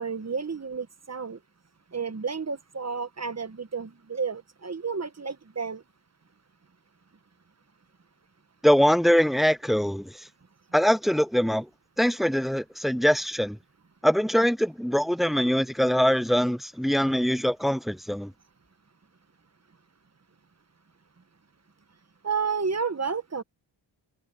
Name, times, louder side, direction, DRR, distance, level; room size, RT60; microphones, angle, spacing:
voice 1, 0.0-1.4 1.9-5.8 22.2-23.4, right 5 dB, 35° right, 1.4 m, -31 dB
voice 2, 8.6-10.1 10.7-11.7 12.0-13.6 14.0-18.3, equal, ahead, 0.4 m, -23 dB
cardioid pair, 65°, 46 cm